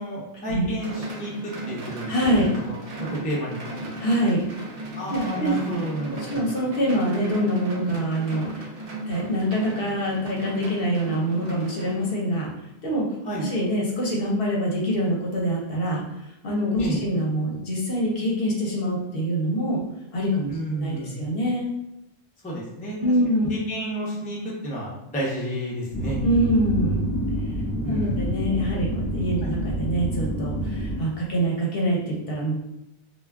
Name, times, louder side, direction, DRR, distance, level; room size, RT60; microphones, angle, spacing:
voice 1, 0.0-2.1 2.4-2.8 3.1-3.9 4.9-6.4 13.2-13.5 16.8-17.0 20.5-21.2 22.4-23.0 23.5-26.2 27.8-28.3 29.4-29.5, right 1 dB, 10° left, -5 dB, 0.4 m, -31 dB
sound 1, 0.8-12.4, right 1 dB, 55° right, 0.4 m, -36 dB
voice 2, 2.1-2.4 4.0-4.6 5.1-5.5 6.3-8.7 9.1-12.5 12.8-13.0 13.4-16.0 16.4-19.8 20.1-21.7 23.0-23.5 26.2-27.1 27.9-32.5, right 1 dB, 60° left, -2 dB, 0.8 m, -25 dB
sound 2, 25.9-31.0, equal, 30° left, 0.8 m, -27 dB
2.2 x 2.2 x 3.3 m, 0.87 s
omnidirectional pair, 1.2 m